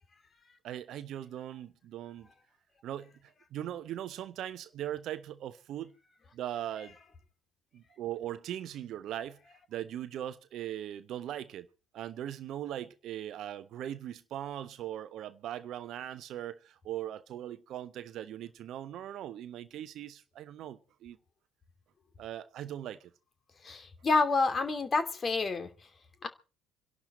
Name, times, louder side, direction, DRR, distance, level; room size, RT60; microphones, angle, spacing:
voice 1, 0.6-2.3 2.8-5.9 6.3-6.9 7.7-9.4 9.7-11.7 11.9-21.2 22.2-23.1, right 11 dB, 50° right, 1.1 m, -40 dB
voice 2, 23.6-25.7 26.2-26.3, left 3 dB, 30° left, 2.8 m, -28 dB
27.5 x 12.0 x 4.3 m
figure-of-eight pair, 55°, 0 cm